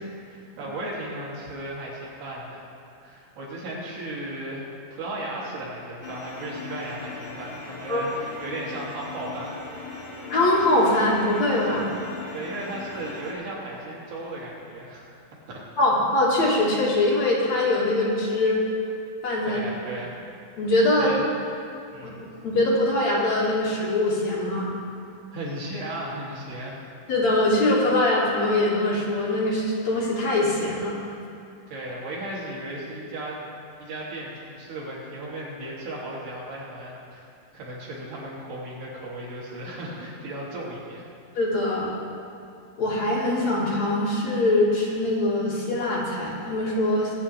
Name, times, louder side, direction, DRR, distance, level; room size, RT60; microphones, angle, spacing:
voice 1, 0.3-2.6 3.0-9.6 12.3-15.1 15.5-15.6 19.6-20.1 20.9-21.2 21.9-22.3 25.3-26.8 31.7-33.4 33.8-37.3 37.5-41.1, right 1 dB, 85° right, -6 dB, 4.7 m, -35 dB
sound 1, 6.0-13.3, left 3 dB, 35° left, 2.8 m, -39 dB
voice 2, 10.3-11.9 15.8-18.6 19.2-19.6 20.6-21.2 22.0-22.1 22.4-24.7 27.1-31.0 41.3-41.9 42.8-47.2, left 1 dB, 50° left, -6 dB, 3.1 m, -22 dB
22.5 x 9.0 x 3.4 m, 2.6 s
omnidirectional pair, 4.4 m